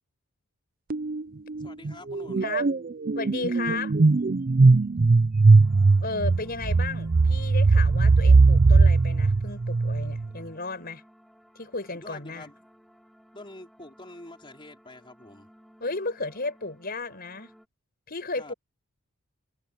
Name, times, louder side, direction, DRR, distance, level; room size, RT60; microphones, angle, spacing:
sound 1, 0.9-1.2 1.5-10.3, right 3 dB, 40° right, 0.5 m, -20 dB
voice 1, 1.6-2.6 12.0-12.7 13.3-15.5 18.3-18.5, left 1 dB, 25° left, 4.6 m, -46 dB
voice 2, 3.2-4.0 6.0-11.0 11.6-12.5 15.8-17.5 18.1-18.5, left 3 dB, 45° left, 5.5 m, -34 dB
sound 2, 5.4-17.7, equal, ahead, 6.7 m, -57 dB
head